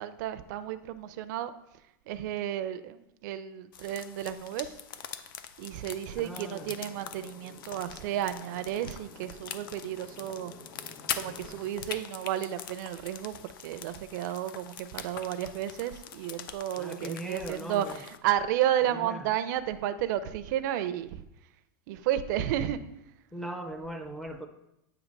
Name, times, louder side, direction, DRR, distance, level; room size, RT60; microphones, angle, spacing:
voice 1, 0.0-1.5 2.1-4.7 5.6-10.5 11.2-21.2 21.9-22.8, right 11 dB, 60° right, 10 dB, 0.4 m, -32 dB
sound 1, 3.7-18.2, left 9 dB, 80° left, 0.5 m, -43 dB
sound 2, 6.1-11.8, left 1 dB, 55° left, 1.6 m, -51 dB
voice 2, 6.1-6.8 16.8-18.0 18.9-19.3 23.3-24.5, right 1 dB, 5° left, 3 dB, 0.4 m, -39 dB
8.3 x 2.9 x 5.1 m, 0.84 s
supercardioid pair, 160°, 11 cm